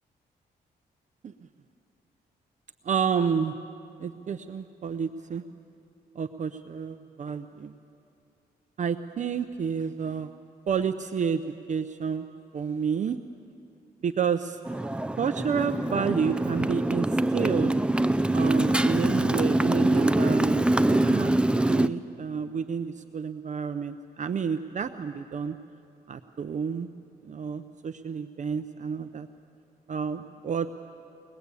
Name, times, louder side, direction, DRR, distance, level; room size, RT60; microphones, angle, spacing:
voice 1, 2.8-3.5 4.0-5.4 6.2-7.7 8.8-10.3 10.7-11.4 11.7-12.3 12.5-13.2 14.0-14.6 15.2-17.7 18.3-21.3 21.7-25.6 26.1-26.9 27.2-29.3 29.9-30.7, right 6 dB, 45° right, 9 dB, 0.6 m, -30 dB
Motorcycle, 14.7-21.9, right 1 dB, 5° right, 0.5 m, -24 dB
22.5 x 20.0 x 8.3 m, 2.6 s
cardioid pair, 90°, 17 cm